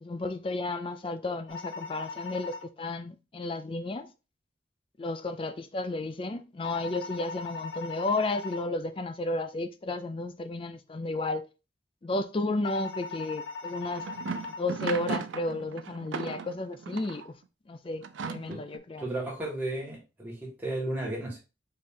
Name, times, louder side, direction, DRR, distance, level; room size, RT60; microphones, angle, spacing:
voice 1, 0.0-4.1 5.0-11.4 12.0-14.1 14.6-17.3 17.7-19.1, left 2 dB, 30° left, 0.4 m, -33 dB
sound 1, 1.5-2.6 6.6-8.6 12.6-14.6, left 4 dB, 90° left, 0.9 m, -39 dB
sound 2, 13.7-17.3 18.0-18.8, right 5 dB, 90° right, 0.5 m, -36 dB
voice 2, 19.0-21.4, right 1 dB, 10° right, 1.7 m, -34 dB
4.4 x 3.1 x 3.6 m
head